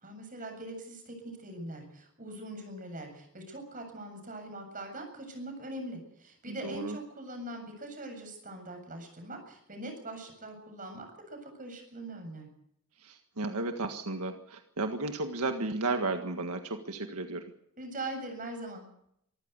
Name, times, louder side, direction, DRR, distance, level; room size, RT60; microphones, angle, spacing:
voice 1, 0.0-12.5 17.8-18.9, right 1 dB, 35° right, 5 dB, 7.6 m, -42 dB
voice 2, 6.5-7.0 13.0-17.4, right 2 dB, 85° right, 6 dB, 1.7 m, -33 dB
25.0 x 14.5 x 8.2 m, 0.75 s
head